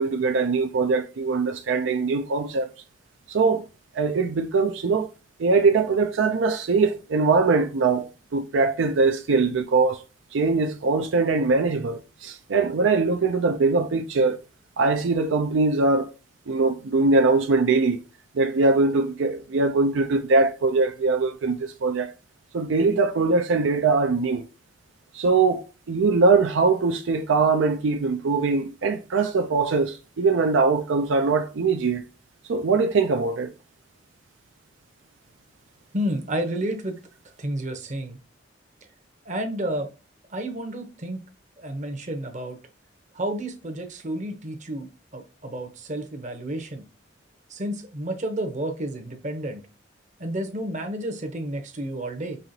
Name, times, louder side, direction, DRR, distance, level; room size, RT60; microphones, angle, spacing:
voice 1, 0.0-2.7 3.3-3.7 3.9-5.1 5.4-10.0 10.3-14.4 14.8-16.1 16.5-18.0 18.3-22.1 22.5-24.4 25.1-32.0 32.5-33.5, right 4 dB, 80° right, 0.5 m, -22 dB
voice 2, 35.9-37.0 37.4-38.2 39.2-39.9 40.3-41.2 41.6-42.6 43.1-46.8 47.5-49.6 50.2-52.4, right 1 dB, 40° right, 0.8 m, -31 dB
5.4 x 2.9 x 2.7 m
head